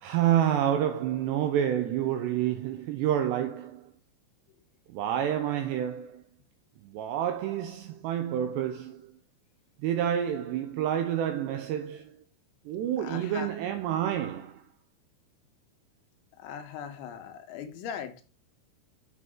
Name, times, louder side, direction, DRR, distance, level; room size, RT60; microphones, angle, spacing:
voice 1, 0.0-3.9 4.9-6.2 6.8-9.1 9.8-12.2 12.7-14.6, right 10 dB, 85° right, 2.4 m, -28 dB
voice 2, 13.0-13.5 16.4-18.2, left 8 dB, 75° left, 3.2 m, -39 dB
8.6 x 5.5 x 3.6 m
omnidirectional pair, 5.7 m